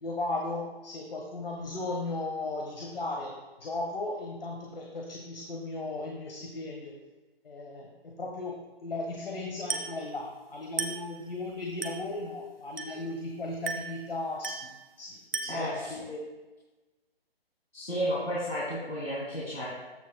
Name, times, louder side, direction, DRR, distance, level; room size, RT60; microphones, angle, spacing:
voice 1, 0.0-3.3 3.6-6.9 7.4-14.7 15.0-16.2, left 2 dB, 65° left, -1 dB, 1.4 m, -36 dB
Glass, 9.7-10.0 10.8-11.1 11.8-12.1 12.8-13.1 13.7-14.0 14.4-14.8 15.3-15.7, right 4 dB, 70° right, 1.2 m, -35 dB
voice 2, 15.5-16.0 17.7-19.7, equal, 85° left, -7 dB, 2.9 m, -32 dB
14.5 x 6.3 x 2.2 m, 1.2 s
figure-of-eight pair, 140°, 31 cm